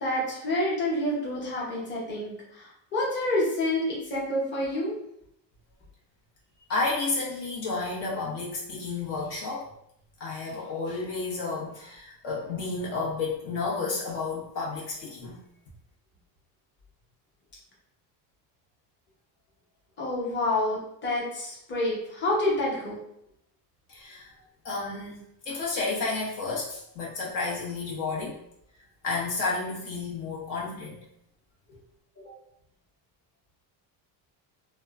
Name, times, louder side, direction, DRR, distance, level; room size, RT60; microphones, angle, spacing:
voice 1, 0.0-4.9 20.0-23.0 32.2-32.3, left 1 dB, 25° left, -5 dB, 1.0 m, -28 dB
voice 2, 6.7-9.7 10.2-15.4 23.9-24.3 24.6-28.4 29.0-31.0, left 3 dB, 65° left, -4 dB, 0.9 m, -31 dB
2.9 x 2.2 x 2.3 m, 0.75 s
cardioid pair, 120°, 45 cm